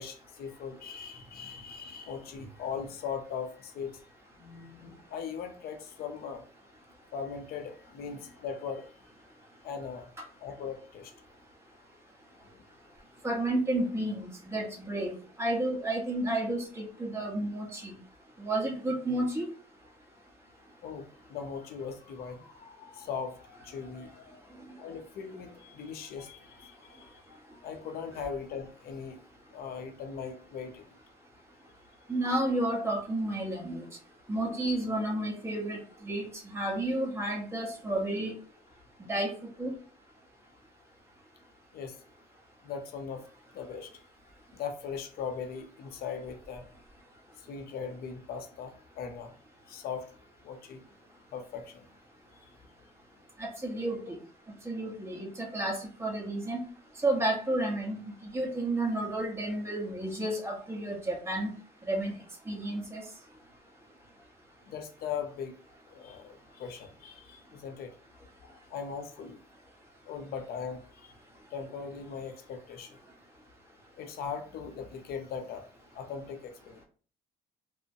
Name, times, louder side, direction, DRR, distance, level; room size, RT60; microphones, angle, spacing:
voice 1, 0.0-4.0 4.4-6.4 7.1-8.9 9.6-10.1 10.4-11.1 12.5-12.6 20.8-24.5 24.8-29.2 29.5-30.9 41.7-42.0 42.6-43.2 43.5-43.9 44.5-46.7 47.5-49.3 49.7-50.1 50.4-50.8 51.3-51.9 52.4-52.5 64.7-65.5 65.9-67.9 68.4-69.4 70.1-71.1 71.5-73.0 74.0-75.6 75.9-76.8, left 6 dB, 65° left, 7 dB, 0.7 m, -39 dB
voice 2, 13.2-17.9 18.4-19.5 32.1-33.8 34.3-38.3 39.1-39.3 39.6-39.7 53.4-54.2 54.6-56.6 57.0-58.0 58.3-61.5 61.8-62.1 62.5-63.1, right 1 dB, 15° right, -1 dB, 1.0 m, -31 dB
3.0 x 2.1 x 2.7 m, 0.40 s
cardioid pair, 110°, 17 cm